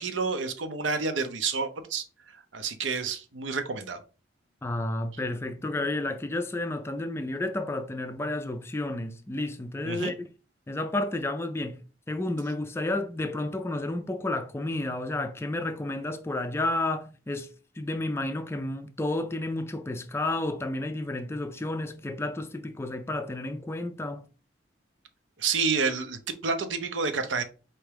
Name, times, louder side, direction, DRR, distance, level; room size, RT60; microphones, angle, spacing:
voice 1, 0.0-2.0 2.5-4.0 9.8-10.1 25.4-27.4, right 4 dB, 90° right, 0.7 m, -29 dB
voice 2, 4.6-10.3 10.7-11.8 12.1-17.5 17.8-24.2, left 2 dB, 15° left, 0.3 m, -31 dB
4.3 x 3.5 x 3.3 m
head